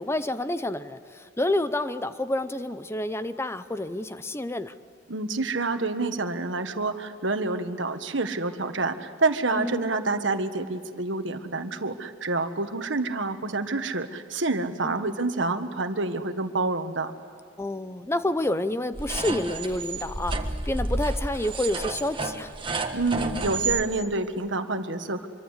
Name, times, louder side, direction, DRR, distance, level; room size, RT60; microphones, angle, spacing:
voice 1, 0.0-4.7 9.5-9.8 14.8-15.1 17.6-20.4 20.7-22.5, left 1 dB, 15° left, 12 dB, 0.6 m, -29 dB
voice 2, 5.1-17.1 22.9-25.3, right 3 dB, 75° right, 8 dB, 1.6 m, -28 dB
sound 1, 18.9-23.8, right 3 dB, 25° right, 1.5 m, -30 dB
25.5 x 24.0 x 8.3 m, 2.3 s
head